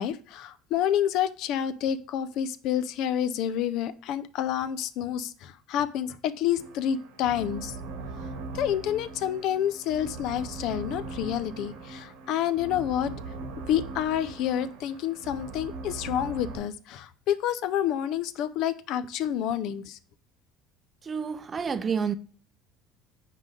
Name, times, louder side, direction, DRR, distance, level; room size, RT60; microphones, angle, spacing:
voice 1, 0.0-7.8 8.5-13.1 13.7-20.0, left 10 dB, 65° left, 0.5 m, -28 dB
sound 1, 6.6-16.6, right 3 dB, 85° right, 1.5 m, -40 dB
voice 2, 21.1-22.1, right 6 dB, 30° right, 0.6 m, -29 dB
5.5 x 3.8 x 4.7 m
supercardioid pair, 100°, 0 cm